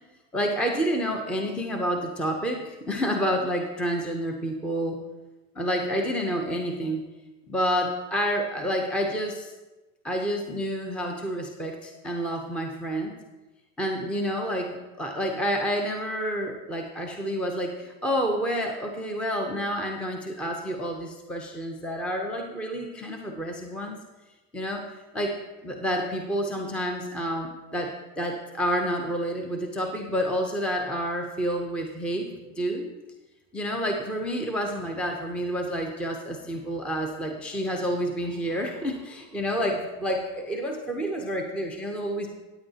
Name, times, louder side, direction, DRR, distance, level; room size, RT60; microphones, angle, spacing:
voice 1, 0.3-5.0 5.6-7.0 7.5-9.5 10.0-13.2 13.8-24.0 24.5-24.8 25.1-25.4 25.6-32.9 33.5-42.3, equal, 5° left, 2 dB, 0.5 m, -29 dB
14.5 x 8.8 x 2.8 m, 1.1 s
supercardioid pair, 145°, 40 cm